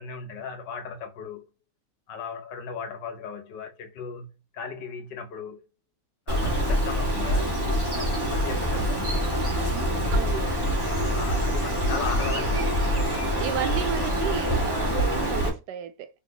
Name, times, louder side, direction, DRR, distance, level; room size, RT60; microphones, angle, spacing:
voice 1, 0.0-1.4 2.1-4.3 4.5-5.6 6.3-7.6 7.9-9.2 11.1-13.1, left 6 dB, 80° left, 1.6 m, -37 dB
Bird, 6.3-15.5, equal, 15° right, 1.2 m, -25 dB
voice 2, 10.1-10.5 13.4-16.1, right 9 dB, 75° right, 1.1 m, -33 dB
4.2 x 3.4 x 2.7 m
omnidirectional pair, 1.9 m